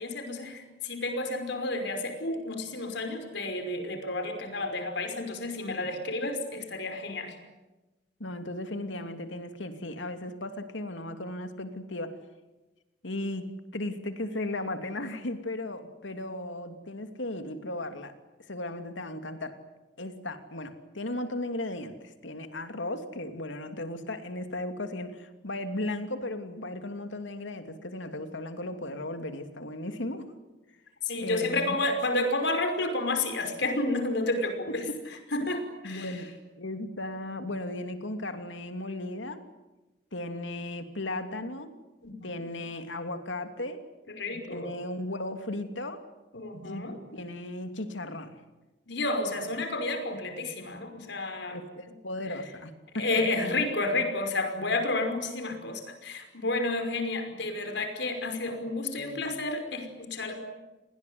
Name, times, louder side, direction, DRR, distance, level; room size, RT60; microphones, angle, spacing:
voice 1, 0.0-7.4 31.1-34.8 35.3-36.1 42.0-42.4 44.1-44.7 46.3-47.0 48.9-51.6 52.9-60.4, left 2 dB, 65° left, 7 dB, 5.5 m, -31 dB
voice 2, 8.2-12.1 13.0-13.4 13.7-18.1 18.5-19.6 20.0-30.3 31.1-31.8 34.7-34.8 35.8-36.3 36.6-39.4 40.1-41.7 42.2-43.8 44.3-46.0 46.6-46.9 47.1-48.4 51.5-53.6, left 1 dB, 85° left, 7 dB, 2.9 m, -36 dB
30.0 x 20.5 x 9.6 m, 1.1 s
head